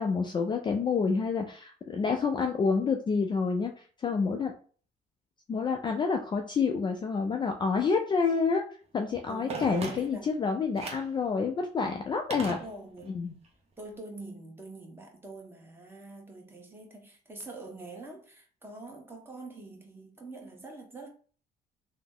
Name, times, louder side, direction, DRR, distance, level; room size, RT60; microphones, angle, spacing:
voice 1, 0.0-4.5 5.5-8.6 8.9-12.6 13.1-13.3, left 5 dB, 25° left, 0.3 m, -28 dB
voice 2, 9.3-10.3 12.4-13.1 13.8-21.1, right 3 dB, 15° right, 0.9 m, -44 dB
Telephone, 9.5-10.4 10.8-11.2 12.3-13.2 13.4-13.5, right 3 dB, 40° right, 0.8 m, -39 dB
2.8 x 2.0 x 3.6 m
cardioid pair, 110°, 17 cm